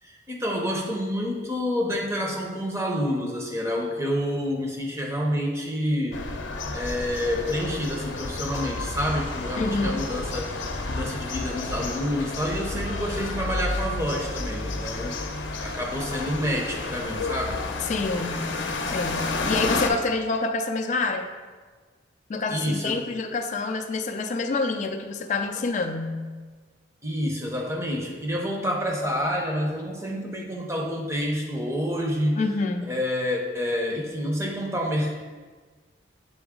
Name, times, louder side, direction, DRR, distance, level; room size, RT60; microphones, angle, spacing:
voice 1, 0.0-6.2 6.7-15.2 15.6-17.6 22.5-23.0 25.6-25.7 27.0-32.4 32.9-35.2, equal, 15° right, 0 dB, 0.7 m, -28 dB
sound 1, 6.1-19.9, left 3 dB, 80° left, 0.6 m, -31 dB
voice 2, 9.6-10.0 17.9-18.6 18.9-21.3 22.3-26.3 32.4-32.9, left 3 dB, 40° left, 4 dB, 0.3 m, -27 dB
6.9 x 3.9 x 3.6 m, 1.4 s
head